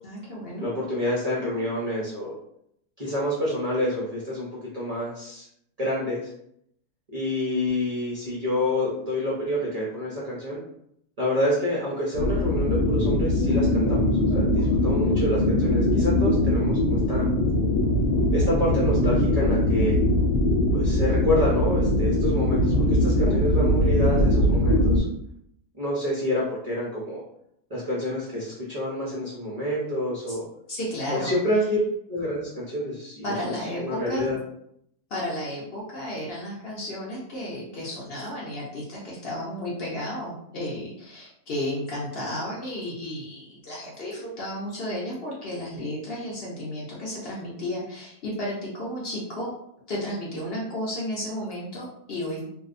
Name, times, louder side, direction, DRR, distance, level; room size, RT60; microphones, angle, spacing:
voice 1, 0.0-0.7 30.3-30.4 30.7-31.4 33.2-34.3 35.1-49.5 49.9-52.5, left 1 dB, 60° left, -5 dB, 0.6 m, -33 dB
voice 2, 0.6-2.3 3.0-5.5 5.8-6.3 7.1-10.6 11.2-17.3 18.3-20.0 20.7-25.0 25.8-27.2 27.7-30.4 31.1-31.8 32.1-34.4, left 1 dB, 75° right, -7 dB, 0.3 m, -28 dB
sound 1, 12.1-25.0, left 1 dB, 85° left, 1.1 m, -21 dB
2.7 x 2.1 x 2.4 m, 0.74 s
omnidirectional pair, 1.6 m